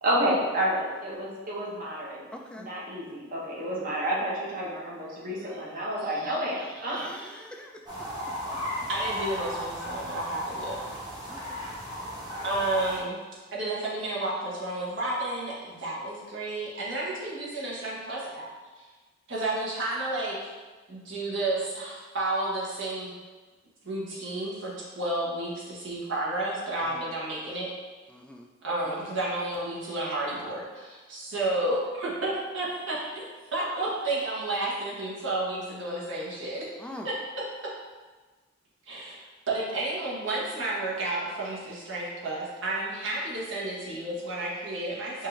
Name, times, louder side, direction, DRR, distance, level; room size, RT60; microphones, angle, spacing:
voice 1, 0.0-2.3 2.6-7.4, right 1 dB, 45° right, -5 dB, 1.1 m, -30 dB
voice 2, 2.3-2.7 6.9-8.1 11.3-11.6 12.1-12.3 26.8-27.1 28.1-28.5 28.8-29.0 36.8-37.1, left 1 dB, 5° left, 1 dB, 0.3 m, -45 dB
sound 1, 7.9-13.0, equal, 25° right, 1.1 m, -35 dB
voice 3, 8.9-11.0 12.4-13.2 13.5-18.5 19.3-20.5 20.9-23.1 23.8-27.7 28.6-33.2 33.5-36.6 37.0-37.1 37.6-37.7 38.9-39.2 39.5-45.3, right 2 dB, 65° right, -6 dB, 1.3 m, -31 dB
5.4 x 2.6 x 3.2 m, 1.3 s
head